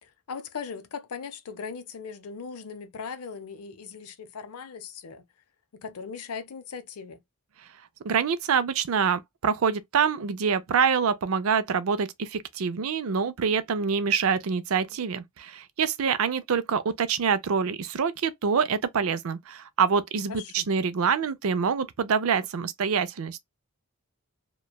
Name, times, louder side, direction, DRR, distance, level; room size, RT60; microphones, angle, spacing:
voice 1, 0.0-5.3 5.7-7.2 20.3-20.7, left 5 dB, 80° left, 0.6 m, -39 dB
voice 2, 8.0-23.4, right 6 dB, 65° right, 0.5 m, -26 dB
3.0 x 2.2 x 2.2 m
head